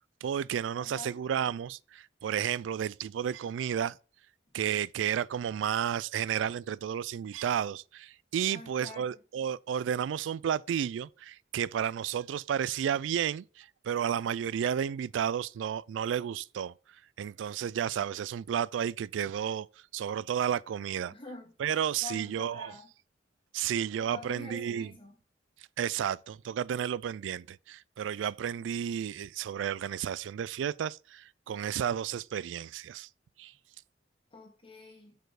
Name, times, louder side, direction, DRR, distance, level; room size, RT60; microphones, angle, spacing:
voice 1, 0.2-4.0 4.5-16.7 17.2-19.7 19.9-21.1 21.6-22.7 23.5-24.9 25.8-33.1 33.4-33.5, right 9 dB, 80° right, 0.3 m, -32 dB
voice 2, 0.8-1.2 8.5-9.2 21.1-21.5 22.0-22.9 24.0-25.2 34.3-35.2, left 3 dB, 30° left, 1.3 m, -47 dB
6.5 x 4.4 x 4.8 m
head